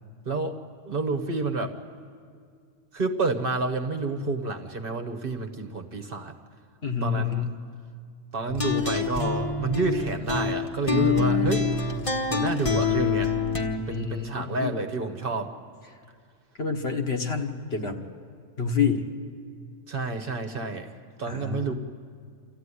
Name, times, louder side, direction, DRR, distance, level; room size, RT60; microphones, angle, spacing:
voice 1, 0.2-1.7 2.9-6.3 7.0-7.5 8.3-11.7 12.3-13.3 13.9-15.5 19.9-20.9 21.2-21.7, right 3 dB, 45° right, 6 dB, 1.3 m, -29 dB
voice 2, 6.8-7.4 13.9-14.8 16.6-18.0 18.6-19.1 21.3-21.7, left 5 dB, 55° left, 4 dB, 1.6 m, -28 dB
sound 1, 8.5-13.8, left 5 dB, 25° left, 1.3 m, -26 dB
27.5 x 14.0 x 9.9 m, 2.2 s
omnidirectional pair, 1.3 m